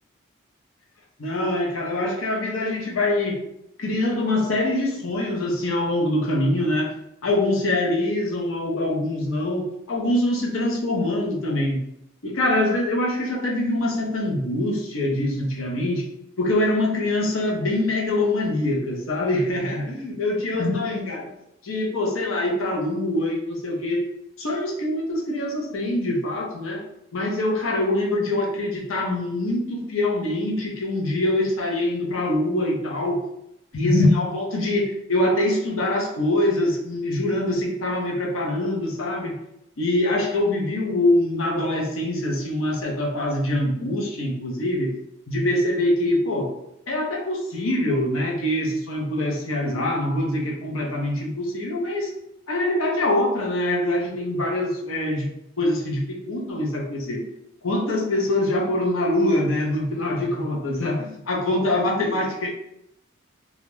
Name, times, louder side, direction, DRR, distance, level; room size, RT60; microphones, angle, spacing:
voice 1, 1.2-3.4 3.8-6.9 7.2-11.8 12.2-16.1 16.4-21.2 21.6-24.1 24.4-26.8 27.1-33.2 33.7-39.4 39.8-44.9 45.3-46.5 46.9-52.1 52.5-55.3 55.6-57.2 57.6-62.5, left 1 dB, 80° left, 0 dB, 0.6 m, -24 dB
2.3 x 2.0 x 3.0 m, 0.80 s
head